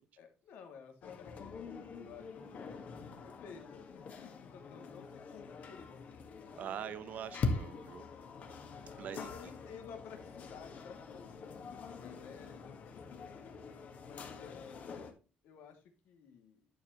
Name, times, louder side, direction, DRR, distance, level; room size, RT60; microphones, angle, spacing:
voice 1, 0.2-5.9 9.3-15.1 15.4-16.7, left 6 dB, 90° left, 2.7 m, -54 dB
sound 1, 1.0-15.1, left 4 dB, 50° left, 1.8 m, -44 dB
voice 2, 2.4-2.8 6.5-8.1 9.0-9.5, right 9 dB, 55° right, 0.7 m, -44 dB
11.0 x 7.1 x 3.2 m
cardioid pair, 160°, 3 cm